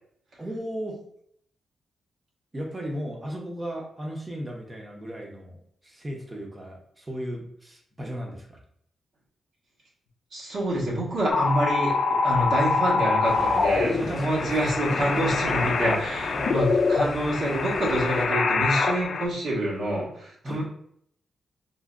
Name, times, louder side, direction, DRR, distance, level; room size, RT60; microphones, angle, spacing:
voice 1, 0.4-1.0 2.5-8.6 13.9-14.6 14.9-15.1 15.5-15.9 16.3-16.5 20.4-20.6, equal, 20° right, 0 dB, 0.8 m, -35 dB
voice 2, 10.3-20.6, right 1 dB, 65° right, -5 dB, 1.4 m, -27 dB
sound 1, 11.3-19.3, left 4 dB, 55° left, 0.4 m, -25 dB
sound 2, 13.2-18.2, right 1 dB, 45° right, 1.3 m, -40 dB
3.8 x 2.7 x 2.5 m, 0.68 s
wide cardioid pair, 130°, 0 cm